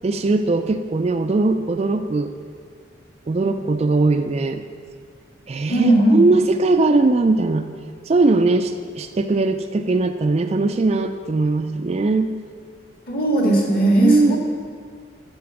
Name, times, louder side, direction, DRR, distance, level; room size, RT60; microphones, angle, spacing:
voice 1, 0.0-2.3 3.3-4.6 5.5-7.7 8.1-12.4 14.0-14.4, right 3 dB, 30° right, 8 dB, 0.3 m, -20 dB
voice 2, 5.7-6.3 13.1-14.4, right 1 dB, 45° left, -1 dB, 1.8 m, -17 dB
12.5 x 4.4 x 7.0 m, 2.1 s
head